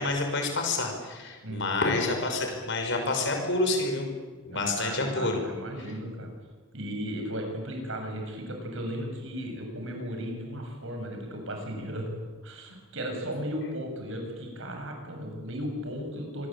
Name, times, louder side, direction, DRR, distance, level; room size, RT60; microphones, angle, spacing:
voice 1, 0.0-4.1 4.4-5.4, left 2 dB, 55° left, 4 dB, 6.0 m, -28 dB
voice 2, 4.5-6.3 6.7-12.1 12.4-16.5, equal, 60° right, 3 dB, 7.5 m, -35 dB
26.0 x 21.5 x 8.9 m, 1.4 s
head